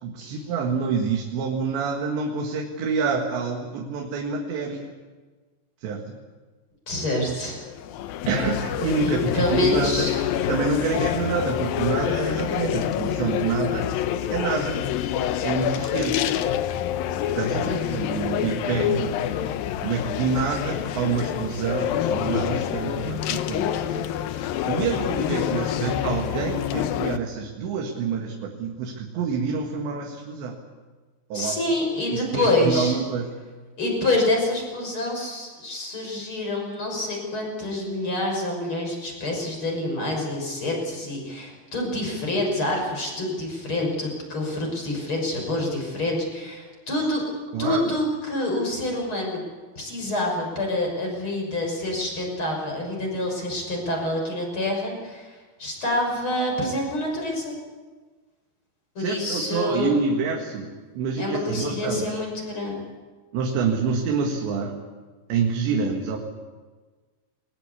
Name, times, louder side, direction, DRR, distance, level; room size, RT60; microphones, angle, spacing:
voice 1, 0.0-4.9 5.8-6.0 8.3-10.1 10.5-13.9 14.3-14.8 15.4-16.3 17.4-19.1 19.8-24.1 24.4-30.6 31.3-31.5 32.1-33.3 47.5-47.9 59.0-62.2 63.3-64.8 65.3-66.2, right 5 dB, 75° right, 1 dB, 4.0 m, -27 dB
voice 2, 6.9-7.6 9.0-10.1 17.5-17.8 31.3-33.0 33.8-47.2 47.6-49.4 49.8-57.6 58.9-60.0 61.2-62.8, left 1 dB, 25° left, 0 dB, 6.8 m, -27 dB
sound 1, 7.4-27.2, left 10 dB, 80° left, 2.1 m, -27 dB
22.5 x 20.0 x 8.4 m, 1.4 s
omnidirectional pair, 5.3 m